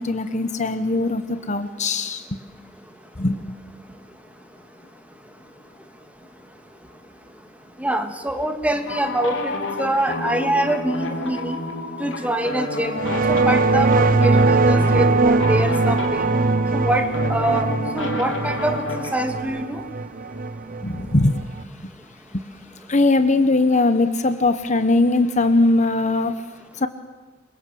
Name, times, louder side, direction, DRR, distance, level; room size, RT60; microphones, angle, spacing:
voice 1, 0.0-2.4 3.2-3.6 20.8-21.4 22.3-22.4 22.9-26.3 26.8-26.9, left 2 dB, 35° left, 11 dB, 1.1 m, -20 dB
voice 2, 7.8-9.5 9.8-11.6 12.0-13.0 13.3-16.2 16.7-17.7 17.9-18.8 19.1-19.8, right 1 dB, 5° right, 6 dB, 2.0 m, -24 dB
sound 1, 8.8-19.4, left 2 dB, 65° left, 3.8 m, -30 dB
sound 2, 12.9-21.6, right 3 dB, 45° right, 0.8 m, -20 dB
28.0 x 24.0 x 7.8 m, 1.3 s
head